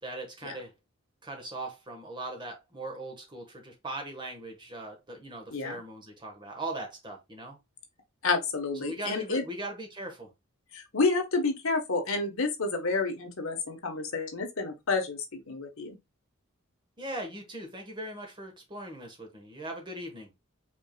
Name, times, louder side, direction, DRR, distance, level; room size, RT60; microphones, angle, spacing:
voice 1, 0.0-0.7 1.2-7.6 8.8-10.3 17.0-20.3, right 1 dB, 20° right, 1.2 m, -39 dB
voice 2, 8.2-9.4 10.7-16.0, left 3 dB, 70° left, 1.2 m, -29 dB
5.1 x 3.8 x 2.2 m
head